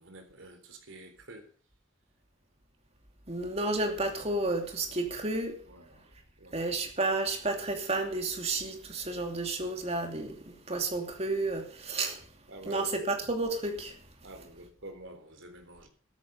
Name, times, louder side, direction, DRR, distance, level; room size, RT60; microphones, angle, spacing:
voice 1, 0.0-1.5 4.9-5.1 5.6-6.5 12.5-13.1 14.2-15.9, right 1 dB, 70° right, 3.7 m, -48 dB
voice 2, 3.3-5.6 6.5-12.2 12.6-13.9, right 2 dB, 30° right, 2.8 m, -31 dB
13.5 x 13.0 x 5.6 m
head